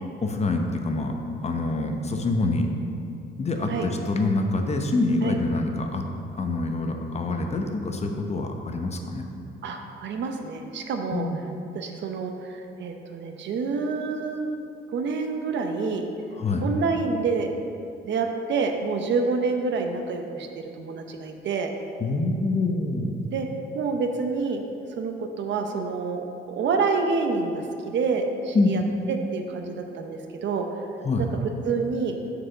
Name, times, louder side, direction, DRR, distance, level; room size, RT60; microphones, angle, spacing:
voice 1, 0.2-2.7 3.4-6.0 6.4-9.3 11.1-11.4 16.4-16.7 22.0-23.1 28.5-28.7 31.0-31.3, left 2 dB, 35° left, 3 dB, 0.9 m, -26 dB
voice 2, 9.6-11.3 11.7-14.5 14.9-16.0 16.6-17.5 18.0-21.7 23.3-23.5 23.7-24.6 25.0-28.8 29.1-30.7 31.2-31.3 31.6-32.1, right 4 dB, 65° right, 4 dB, 0.8 m, -27 dB
6.2 x 4.8 x 6.7 m, 2.6 s
cardioid pair, 90°, 20 cm